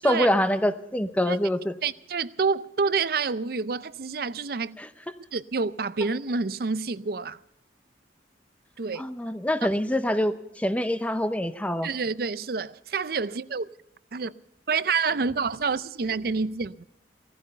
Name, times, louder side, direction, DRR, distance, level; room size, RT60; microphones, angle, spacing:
voice 1, 0.0-1.7 4.8-4.9 9.0-11.9, equal, 10° left, 0.8 m, -25 dB
voice 2, 1.8-4.8 5.3-7.4 8.8-9.1 11.8-13.7 14.1-14.3 14.7-16.9, right 4 dB, 55° right, 0.5 m, -28 dB
17.5 x 14.5 x 5.5 m
head